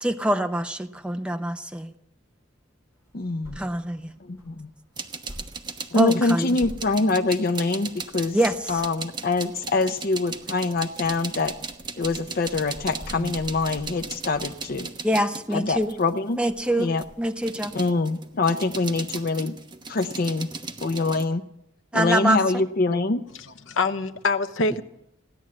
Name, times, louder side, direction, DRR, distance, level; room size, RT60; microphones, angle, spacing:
voice 1, 0.0-1.9 3.6-4.1 5.9-6.6 8.3-8.6 15.0-15.9 16.4-16.9 17.2-17.7 21.9-22.6, right 1 dB, 5° right, 0.7 m, -24 dB
sound 1, 2.9-17.8, equal, 10° left, 7.7 m, -47 dB
voice 2, 3.1-3.6 4.3-4.7 5.9-8.4 8.7-11.5 12.0-14.9 15.5-16.4 16.8-17.0 17.7-19.5 19.9-20.5 20.8-21.4 21.9-23.2, left 3 dB, 50° left, 0.6 m, -24 dB
sound 2, 5.0-16.2 16.6-21.2, right 4 dB, 20° right, 1.1 m, -37 dB
voice 3, 23.4-24.8, left 3 dB, 70° left, 0.9 m, -25 dB
16.5 x 11.0 x 7.6 m
head